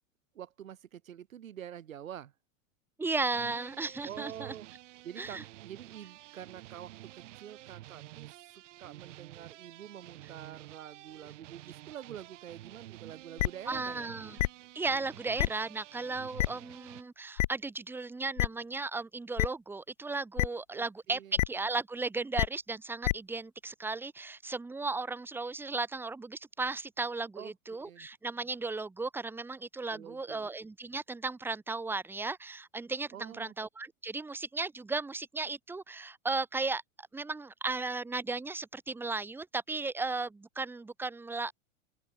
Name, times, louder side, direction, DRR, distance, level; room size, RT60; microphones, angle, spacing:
voice 1, 0.3-2.3 4.0-4.7 5.0-14.1 20.7-21.4 27.4-28.1 29.9-30.4 33.1-33.5, right 10 dB, 80° right, 4.5 m, -47 dB
voice 2, 3.0-4.5 5.2-5.4 13.7-14.4 14.7-41.5, right 3 dB, 5° right, 0.8 m, -35 dB
sound 1, 3.3-17.0, right 16 dB, 65° right, 3.6 m, -50 dB
sound 2, 13.4-13.5 14.4-14.5 15.4-15.5 16.4-16.5 17.4-17.5 18.4-18.5 19.4-19.5 20.4-20.5 21.4-21.5 22.4-22.5 23.0-23.1, left 17 dB, 65° left, 0.9 m, -26 dB
open air
hypercardioid pair, 110°, 40 cm